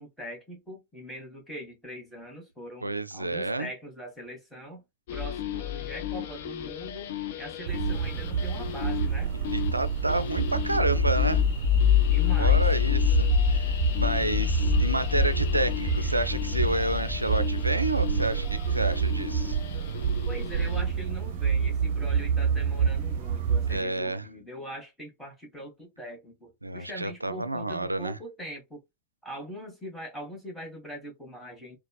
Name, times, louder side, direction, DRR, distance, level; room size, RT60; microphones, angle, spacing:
voice 1, 0.0-4.8 5.1-7.1 7.4-9.3 12.1-12.6 20.2-28.8 29.2-31.8, equal, 5° left, 1.7 m, -41 dB
voice 2, 2.8-3.7 9.5-11.4 12.4-19.6 23.7-24.3 26.6-28.2, right 2 dB, 85° right, 0.3 m, -29 dB
sound 1, 5.1-21.0, left 12 dB, 55° left, 0.6 m, -29 dB
sound 2, 7.7-23.8, right 7 dB, 50° right, 0.6 m, -28 dB
4.0 x 2.3 x 2.3 m
figure-of-eight pair, 90°, 0 cm